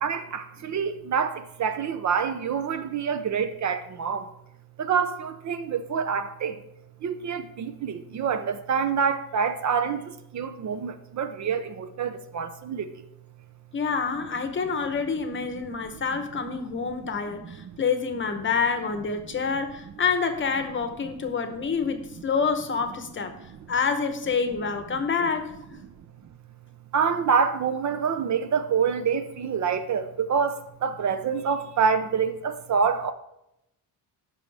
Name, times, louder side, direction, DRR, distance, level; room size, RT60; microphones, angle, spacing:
voice 1, 0.0-1.3 1.6-4.2 4.8-6.5 7.0-10.0 10.3-12.8 26.9-30.5 30.8-33.1, right 6 dB, 50° right, 10 dB, 0.6 m, -26 dB
voice 2, 13.7-23.3 23.7-25.5, left 5 dB, 30° left, 8 dB, 0.8 m, -27 dB
16.0 x 6.2 x 3.3 m, 0.84 s
wide cardioid pair, 175°, 38 cm